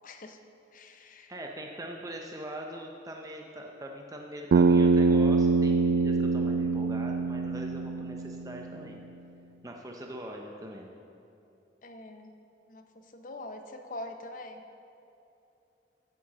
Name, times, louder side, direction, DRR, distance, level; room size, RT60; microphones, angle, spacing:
voice 1, 0.0-0.4 0.7-1.3 11.8-12.3 12.7-14.6, left 1 dB, 45° left, 6 dB, 0.7 m, -43 dB
voice 2, 1.3-9.0 9.6-10.9, right 1 dB, 20° right, 1 dB, 0.6 m, -42 dB
Bass guitar, 4.5-8.8, right 4 dB, 65° right, 0.3 m, -24 dB
8.4 x 7.6 x 7.3 m, 2.8 s
head